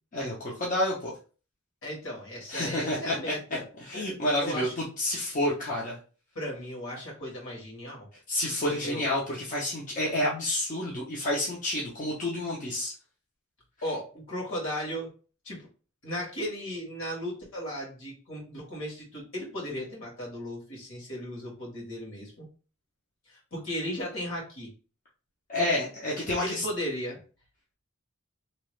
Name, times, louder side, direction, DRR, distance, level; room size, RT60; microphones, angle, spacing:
voice 1, 0.1-1.1 2.5-6.0 8.3-12.9 25.5-26.6, left 1 dB, 35° left, -5 dB, 0.6 m, -29 dB
voice 2, 1.8-3.6 3.9-4.0 4.4-4.7 6.3-8.1 8.7-9.0 13.8-15.1 15.4-15.6 16.0-22.5 23.3-24.7 26.4-27.2, equal, 65° left, -2 dB, 1.5 m, -36 dB
2.9 x 2.3 x 3.1 m, 0.36 s
head